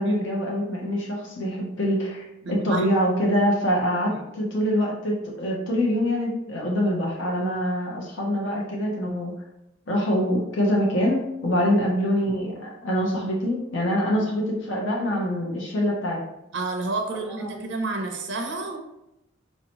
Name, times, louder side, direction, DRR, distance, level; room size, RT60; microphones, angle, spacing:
voice 1, 0.0-9.3 9.9-16.2 17.4-17.7, equal, 65° left, -2 dB, 0.7 m, -25 dB
voice 2, 2.4-2.8 4.4-4.5 14.1-14.3 16.5-18.8, right 3 dB, 60° right, 3 dB, 0.5 m, -30 dB
4.3 x 2.8 x 2.9 m, 0.88 s
head